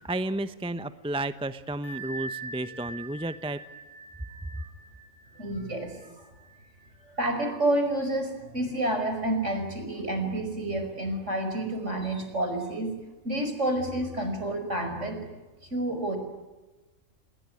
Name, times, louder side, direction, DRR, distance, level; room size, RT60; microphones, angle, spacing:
voice 1, 0.0-3.6, right 2 dB, 5° right, 12 dB, 0.7 m, -32 dB
Bell, 1.8-7.3, right 3 dB, 55° left, 7.9 m, -43 dB
voice 2, 5.4-5.9 7.1-12.9 13.2-15.3 15.7-16.2, right 1 dB, 60° right, 6 dB, 5.8 m, -29 dB
28.5 x 21.0 x 9.8 m, 1.1 s
omnidirectional pair, 1.4 m